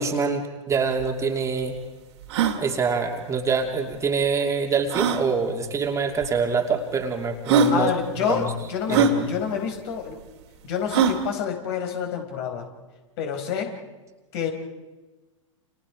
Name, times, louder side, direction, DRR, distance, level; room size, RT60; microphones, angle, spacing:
voice 1, 0.0-1.7 2.6-7.9 8.3-8.5 8.9-9.3, right 5 dB, 15° right, 3 dB, 2.6 m, -25 dB
sound 1, 0.7-0.8 1.0-1.1 1.6-1.7 2.2-2.6 3.9-4.0 4.9-5.2 6.2-6.3 7.0-7.1 7.5-7.8 8.9-9.2 10.9-11.2, right 5 dB, 55° right, 2.7 m, -21 dB
voice 2, 7.7-10.2 10.6-12.7 13.2-13.8 14.3-14.5, left 7 dB, 50° left, 4 dB, 4.6 m, -28 dB
30.0 x 28.5 x 4.9 m, 1.2 s
figure-of-eight pair, 100°, 17 cm